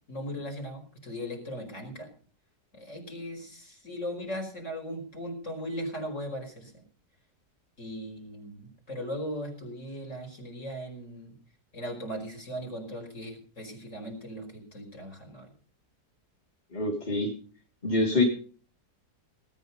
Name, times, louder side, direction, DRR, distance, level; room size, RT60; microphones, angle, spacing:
voice 1, 0.1-2.1 2.7-6.7 7.8-11.3 11.7-15.5, equal, 45° left, 2 dB, 5.5 m, -38 dB
voice 2, 16.7-17.3 17.8-18.2, left 2 dB, 25° left, -2 dB, 3.4 m, -25 dB
19.0 x 10.0 x 5.4 m, 0.42 s
omnidirectional pair, 1.8 m